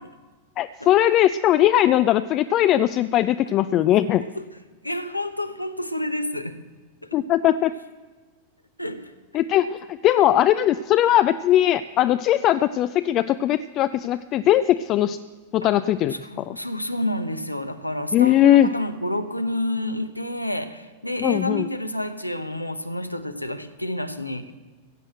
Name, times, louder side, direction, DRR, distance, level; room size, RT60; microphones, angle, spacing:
voice 1, 0.6-4.2 7.1-7.7 9.3-15.2 15.5-16.6 18.1-18.7 21.2-21.7, left 12 dB, 35° left, 11 dB, 0.4 m, -19 dB
voice 2, 4.8-6.6 7.0-7.2 8.8-9.1 15.6-15.7 16.2-24.5, left 1 dB, 85° left, 9 dB, 0.9 m, -29 dB
16.0 x 7.9 x 7.7 m, 1.3 s
figure-of-eight pair, 90°, 0 cm